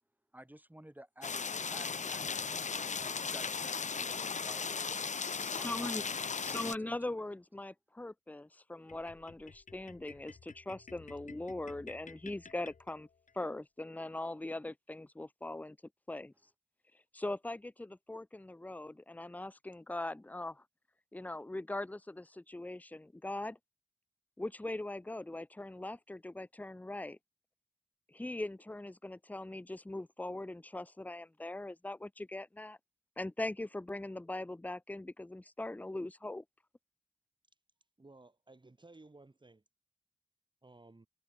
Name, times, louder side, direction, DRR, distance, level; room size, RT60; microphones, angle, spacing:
voice 1, 0.3-2.3 2.7-4.9 5.5-7.3, right 1 dB, 15° right, 4.9 m, -53 dB
sound 1, 1.2-6.8, left 5 dB, 70° left, 0.9 m, -37 dB
voice 2, 5.2-6.0 6.4-13.1 13.3-15.8 16.1-16.3 17.1-20.6 21.1-23.6 24.4-27.2 28.1-32.8 33.2-36.4, left 2 dB, 10° left, 0.6 m, -41 dB
sound 2, 8.9-13.4, left 5 dB, 85° left, 5.0 m, -55 dB
voice 3, 38.0-39.6 40.6-41.1, right 2 dB, 40° right, 3.7 m, -57 dB
cardioid pair, 45°, 13 cm